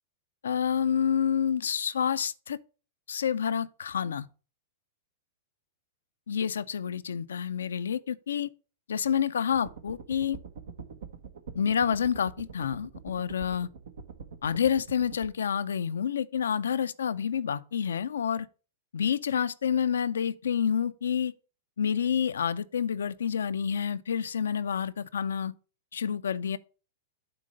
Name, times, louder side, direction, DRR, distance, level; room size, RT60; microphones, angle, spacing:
voice 1, 0.4-2.6 3.1-4.3 6.3-8.5 8.9-10.4 11.5-13.7 14.4-18.5 18.9-21.3 21.8-25.5 25.9-26.6, left 8 dB, 80° left, 0.4 m, -28 dB
sound 1, 9.5-15.3, right 5 dB, 75° right, 1.0 m, -44 dB
7.8 x 3.2 x 6.3 m
hypercardioid pair, 110°, 0 cm